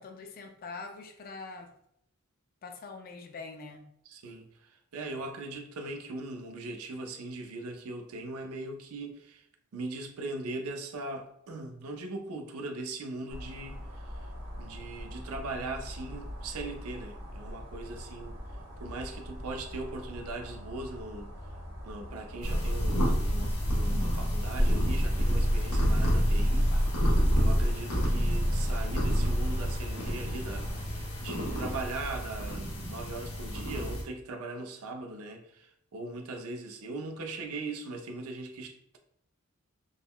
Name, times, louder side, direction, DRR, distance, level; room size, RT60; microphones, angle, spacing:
voice 1, 0.0-1.7 2.6-3.9, left 4 dB, 45° left, 5 dB, 0.4 m, -43 dB
voice 2, 4.1-9.5 9.7-14.3 14.6-18.4 18.8-21.3 21.8-39.0, right 2 dB, 80° right, 5 dB, 0.5 m, -40 dB
sound 1, 13.3-30.8, equal, 50° right, 1.1 m, -42 dB
sound 2, 22.4-34.0, equal, 80° left, 0.8 m, -28 dB
sound 3, 25.0-32.8, right 1 dB, 35° right, 0.6 m, -48 dB
3.6 x 2.0 x 2.2 m, 0.75 s
head